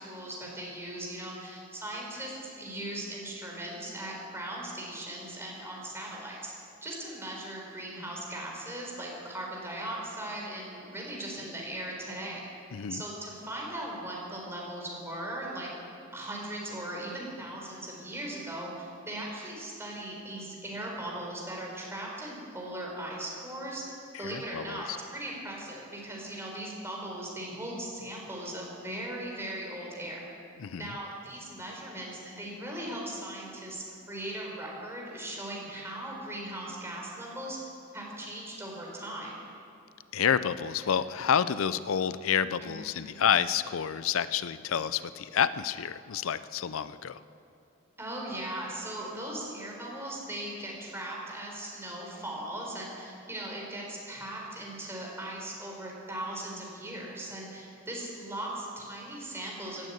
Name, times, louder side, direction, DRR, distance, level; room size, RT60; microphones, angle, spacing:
voice 1, 0.0-6.5 6.8-12.5 12.9-15.7 16.1-23.8 24.2-30.2 30.8-37.6 37.9-39.3 42.6-42.7 43.0-43.2 48.0-59.9, right 1 dB, 15° right, -2 dB, 4.0 m, -39 dB
voice 2, 12.7-13.0 24.1-24.8 30.6-30.9 40.1-47.2, left 8 dB, 90° left, 15 dB, 0.5 m, -29 dB
17.0 x 9.3 x 8.7 m, 2.5 s
head